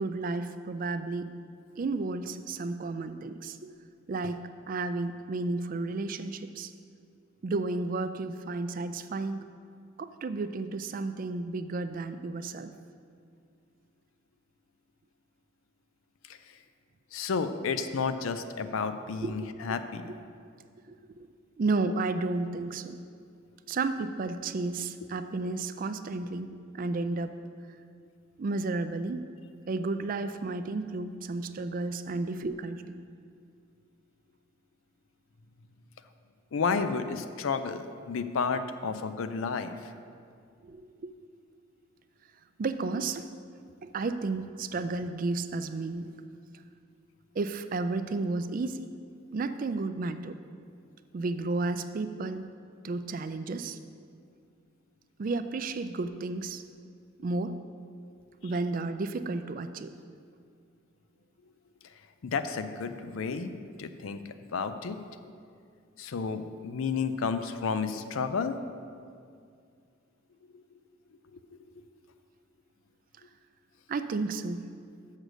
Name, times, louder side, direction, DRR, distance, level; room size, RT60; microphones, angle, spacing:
voice 1, 0.0-1.3 1.8-3.7 4.1-4.4 4.7-6.7 7.4-9.4 10.0-12.7 19.2-19.8 20.9-21.3 21.6-23.0 23.7-27.3 28.4-29.2 29.7-33.0 40.6-41.1 42.6-43.3 43.8-46.1 47.3-48.8 49.3-50.4 51.1-52.5 52.8-53.8 55.2-56.6 57.2-57.6 58.4-59.9 73.9-74.6, right 3 dB, 40° right, 10 dB, 0.3 m, -32 dB
voice 2, 17.1-20.1 36.5-39.7 62.2-63.5 63.8-65.0 66.0-68.6 71.3-71.4, left 5 dB, 80° left, 10 dB, 0.4 m, -31 dB
6.5 x 6.4 x 6.2 m, 2.3 s
head